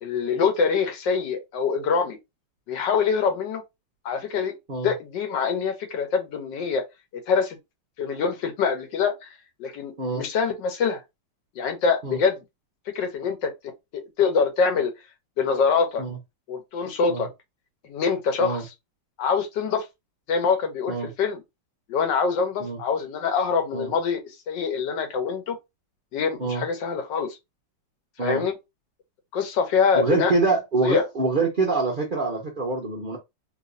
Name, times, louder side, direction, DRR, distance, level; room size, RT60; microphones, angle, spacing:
voice 1, 0.0-2.2 2.7-3.6 4.0-4.5 4.8-6.8 7.3-7.6 8.0-9.3 9.6-11.0 11.6-12.4 12.9-13.5 13.9-14.9 15.4-16.0 16.5-17.3 17.8-18.6 19.2-19.9 20.3-21.4 21.9-25.6 26.1-27.4 28.2-28.5 29.3-30.3 30.8-31.0, left 5 dB, 70° left, 1.5 m, -24 dB
voice 2, 29.9-33.2, right 3 dB, 75° right, 0.4 m, -25 dB
3.1 x 3.1 x 2.5 m
omnidirectional pair, 2.1 m